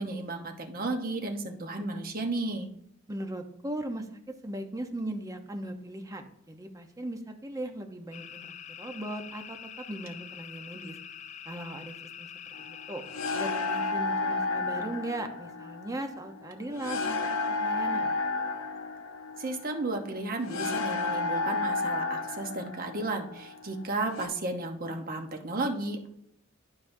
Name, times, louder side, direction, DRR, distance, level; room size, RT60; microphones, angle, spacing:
voice 1, 0.0-2.7 19.4-26.1, right 2 dB, 45° right, 4 dB, 1.0 m, -33 dB
voice 2, 3.1-11.0 11.5-12.3 12.6-13.0 13.3-18.2, right 1 dB, 15° right, 5 dB, 0.8 m, -38 dB
sound 1, 8.1-13.9, left 8 dB, 35° left, 0.3 m, -45 dB
sound 2, 12.5-24.3, left 3 dB, 75° left, 0.7 m, -32 dB
11.5 x 5.2 x 2.7 m, 0.74 s
head